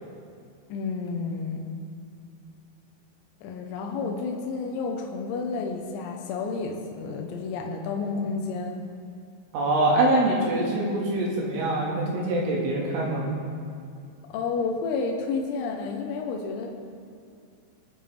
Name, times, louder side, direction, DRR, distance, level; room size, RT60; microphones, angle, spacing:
voice 1, 0.7-1.7 3.4-8.8 14.3-16.7, left 4 dB, 90° left, 1 dB, 3.9 m, -30 dB
voice 2, 9.5-13.3, right 1 dB, 75° right, -3 dB, 4.3 m, -24 dB
25.5 x 9.1 x 3.5 m, 2.4 s
omnidirectional pair, 5.9 m